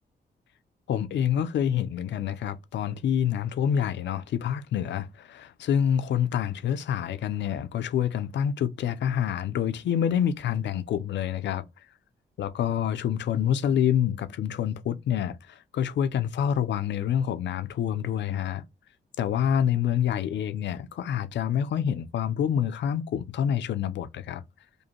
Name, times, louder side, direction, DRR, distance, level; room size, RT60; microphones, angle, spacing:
voice 1, 0.9-11.7 12.4-18.6 19.2-24.4, left 9 dB, 85° left, 0.5 m, -27 dB
5.2 x 2.1 x 2.9 m
cardioid pair, 85°, 18 cm